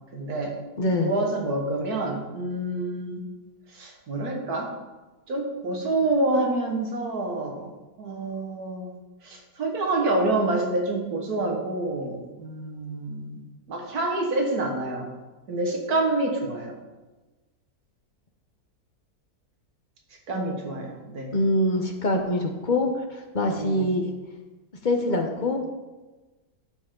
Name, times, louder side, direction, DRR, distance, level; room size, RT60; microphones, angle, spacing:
voice 1, 0.1-0.6 1.0-3.2 3.7-4.7 5.3-7.7 8.0-9.0 9.2-13.4 13.7-15.1 15.5-16.7 20.3-21.3 23.5-23.9, right 2 dB, 75° right, 1 dB, 1.9 m, -27 dB
voice 2, 0.8-1.1 21.3-24.1 24.8-25.6, left 1 dB, 40° left, 3 dB, 0.8 m, -24 dB
11.0 x 5.5 x 3.8 m, 1.2 s
omnidirectional pair, 1.7 m